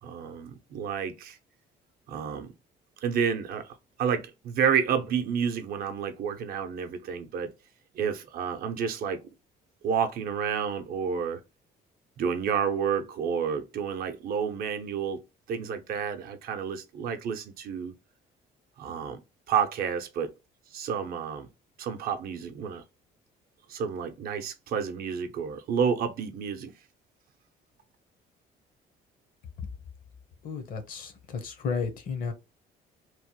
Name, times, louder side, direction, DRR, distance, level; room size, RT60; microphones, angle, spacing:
voice 1, 0.0-1.4 2.1-2.5 3.0-7.5 8.0-9.2 9.8-11.4 12.2-15.2 15.5-17.9 18.8-19.2 19.5-20.3 20.7-21.5 21.8-22.8 23.7-26.7, right 7 dB, 60° right, 0.6 m, -30 dB
voice 2, 30.4-32.3, left 5 dB, 55° left, 0.8 m, -33 dB
3.0 x 2.1 x 2.9 m
cardioid pair, 110°, 17 cm